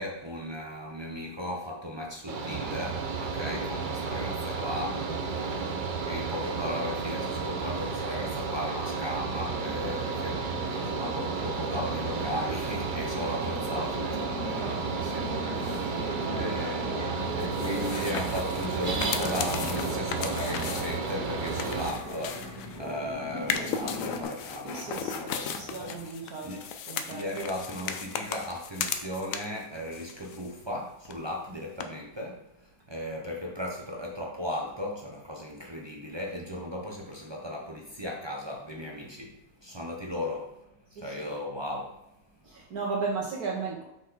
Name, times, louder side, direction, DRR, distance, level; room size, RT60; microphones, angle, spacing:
voice 1, 0.0-5.6 6.1-26.2 26.4-26.7 27.1-40.6 41.0-42.0, left 1 dB, 25° right, -2 dB, 0.5 m, -37 dB
Mechanical fan, 2.3-21.9, right 4 dB, 80° right, 0.4 m, -32 dB
voice 2, 5.3-5.7 15.8-16.7 24.6-26.5 26.9-27.2 40.9-41.0 42.4-43.8, right 4 dB, 60° right, -3 dB, 1.4 m, -36 dB
sound 1, 9.4-24.2, left 1 dB, 30° left, 2.9 m, -39 dB
sound 2, 17.4-22.9 23.4-29.6 29.9-30.8 31.0-31.1 31.8-31.9, left 7 dB, 70° left, 0.8 m, -36 dB
5.9 x 5.2 x 4.0 m, 0.85 s
omnidirectional pair, 1.9 m